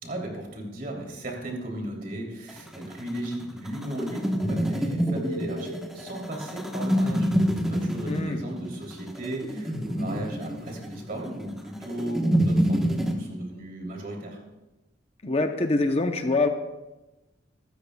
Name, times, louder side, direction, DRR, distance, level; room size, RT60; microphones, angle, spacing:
voice 1, 0.0-7.3 7.7-14.4, right 1 dB, 45° right, -1 dB, 3.1 m, -35 dB
sound 1, 2.5-13.1, equal, ahead, 1.1 m, -27 dB
voice 2, 8.1-8.4 15.2-16.5, left 2 dB, 30° left, 5 dB, 0.7 m, -24 dB
24.0 x 13.0 x 2.3 m, 1.0 s
head